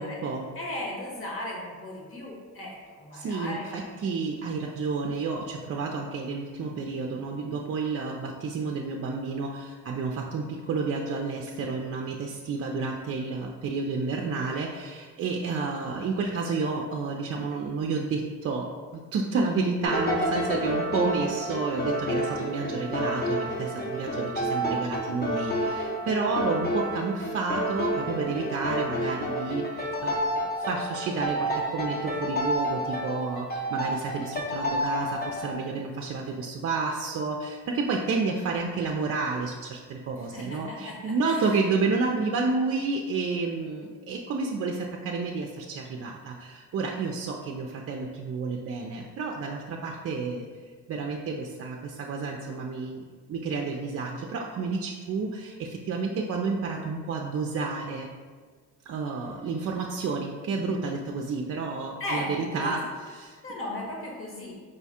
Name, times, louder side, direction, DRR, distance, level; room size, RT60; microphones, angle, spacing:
voice 1, 0.0-0.5 3.1-18.7 18.9-50.5 50.9-58.1 58.9-62.8 63.1-63.4, right 4 dB, 50° right, 1 dB, 0.4 m, -30 dB
voice 2, 0.5-3.9 40.2-41.5 62.0-62.7 63.4-64.5, left 1 dB, 45° left, -3 dB, 1.4 m, -36 dB
sound 1, 19.8-35.5, equal, 30° left, 0.8 m, -29 dB
5.0 x 2.3 x 4.2 m, 1.5 s
cardioid pair, 90°, 30 cm